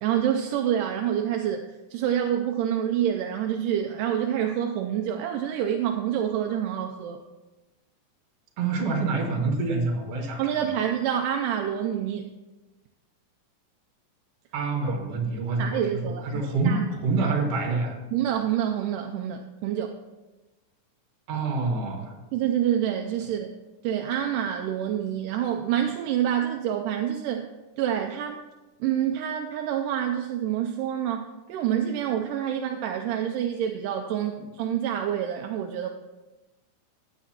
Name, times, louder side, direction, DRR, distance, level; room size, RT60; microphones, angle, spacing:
voice 1, 0.0-7.2 10.4-12.3 15.6-16.8 17.1-17.3 18.1-20.0 22.3-23.5 23.8-27.5 27.8-28.4 28.8-35.9, right 10 dB, 80° right, 4 dB, 2.1 m, -27 dB
voice 2, 8.6-10.4 14.5-17.9 21.3-22.1, right 3 dB, 50° right, 1 dB, 2.5 m, -26 dB
15.0 x 9.7 x 2.9 m, 1.1 s
omnidirectional pair, 3.9 m